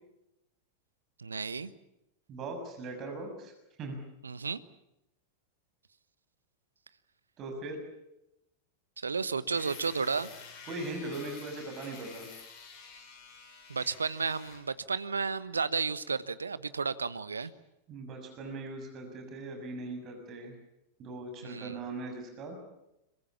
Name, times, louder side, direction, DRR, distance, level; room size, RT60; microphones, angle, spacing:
voice 1, 1.2-1.7 4.2-4.6 9.0-10.3 13.7-17.5 21.4-21.8, right 5 dB, 75° right, 15 dB, 1.2 m, -32 dB
voice 2, 2.3-3.5 3.8-4.0 7.4-7.8 10.7-12.3 17.9-20.6 21.0-22.6, right 2 dB, 35° right, 4 dB, 6.7 m, -40 dB
sound 1, 9.5-14.6, left 5 dB, 40° left, 7.0 m, -49 dB
26.0 x 23.0 x 7.3 m, 0.88 s
figure-of-eight pair, 90°, 0 cm